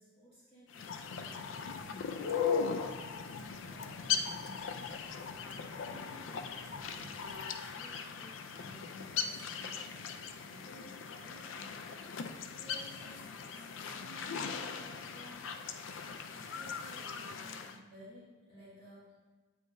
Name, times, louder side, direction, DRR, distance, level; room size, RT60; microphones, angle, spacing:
voice 1, 0.0-3.3 3.6-4.9 5.7-12.0 12.6-15.5 16.3-19.1, equal, 30° left, -11 dB, 1.6 m, -56 dB
sound 1, 0.7-17.8, left 6 dB, 90° left, 0.4 m, -39 dB
sound 2, 0.9-9.1, right 1 dB, 80° right, 0.7 m, -57 dB
8.2 x 4.7 x 2.6 m, 1.3 s
head